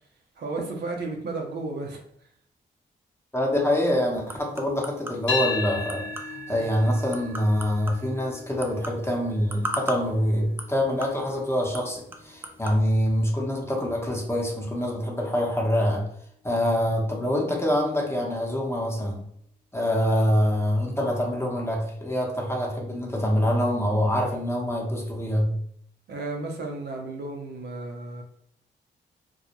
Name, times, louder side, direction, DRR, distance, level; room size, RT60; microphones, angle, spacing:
voice 1, 0.4-2.0 26.1-28.2, right 2 dB, 60° right, 1 dB, 0.6 m, -33 dB
voice 2, 3.3-6.1 6.5-16.0 16.4-19.2 19.7-25.5, equal, 15° left, -1 dB, 0.8 m, -25 dB
sound 1, 3.4-12.8, right 1 dB, 10° right, 0.4 m, -40 dB
sound 2, 5.3-13.5, left 5 dB, 85° left, 0.9 m, -36 dB
2.3 x 2.1 x 2.9 m, 0.69 s
supercardioid pair, 55°, 19 cm